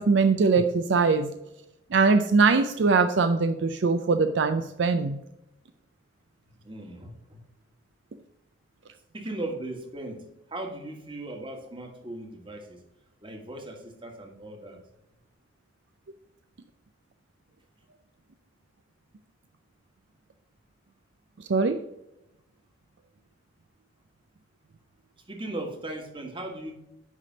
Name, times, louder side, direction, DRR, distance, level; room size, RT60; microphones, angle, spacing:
voice 1, 0.0-1.3 1.9-5.2 21.5-21.8, right 4 dB, 65° right, 9 dB, 0.4 m, -22 dB
voice 2, 6.6-7.4 9.1-12.8 13.2-14.8 25.3-26.7, right 1 dB, 25° right, 1 dB, 1.6 m, -38 dB
9.7 x 3.4 x 6.1 m, 0.90 s
head